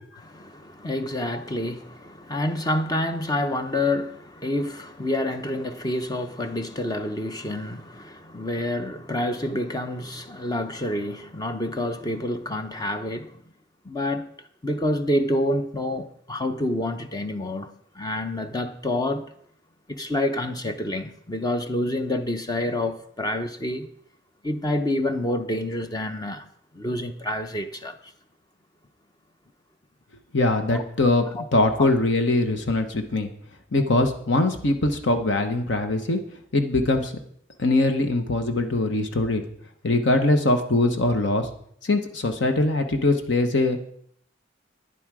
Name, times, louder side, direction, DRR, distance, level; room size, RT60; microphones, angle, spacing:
voice 1, 0.2-13.4 13.8-14.3 14.6-19.3 19.9-23.9 24.4-26.5 26.7-28.0 30.7-30.8 31.4-31.5 31.8-31.9, left 1 dB, 20° left, 0.6 m, -28 dB
voice 2, 30.3-31.3 31.5-33.3 33.7-36.2 36.5-37.1 37.6-39.4 39.8-41.5 41.8-43.8, left 2 dB, 65° left, 1.0 m, -22 dB
11.0 x 10.0 x 4.8 m
head